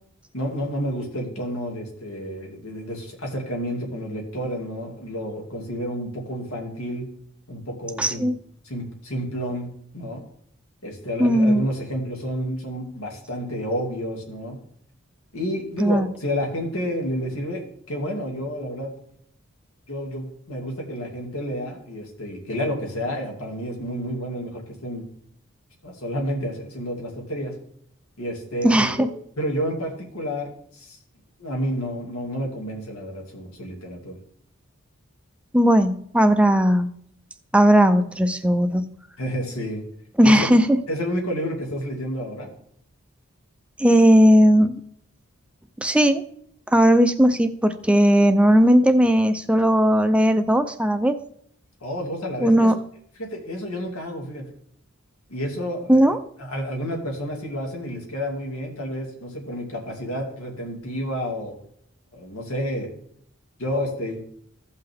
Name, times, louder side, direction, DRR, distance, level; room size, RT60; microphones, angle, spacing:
voice 1, 0.3-7.0 7.5-8.2 8.6-9.7 9.9-10.2 10.8-14.6 15.3-18.9 19.9-25.0 25.8-27.5 28.2-29.1 29.4-31.0 31.4-34.2 39.2-39.8 40.2-40.5 40.9-42.5 51.8-52.7 53.2-54.4 55.3-61.5 62.1-62.9 63.6-64.2, equal, 90° left, 1 dB, 2.3 m, -30 dB
voice 2, 8.0-8.3 11.2-11.7 15.8-16.1 28.6-29.1 35.5-36.9 37.5-38.9 40.2-40.8 43.8-44.8 45.8-46.2 46.7-51.2 52.4-52.7 55.9-56.2, equal, 5° right, 8 dB, 0.5 m, -17 dB
15.5 x 5.6 x 3.5 m, 0.67 s
head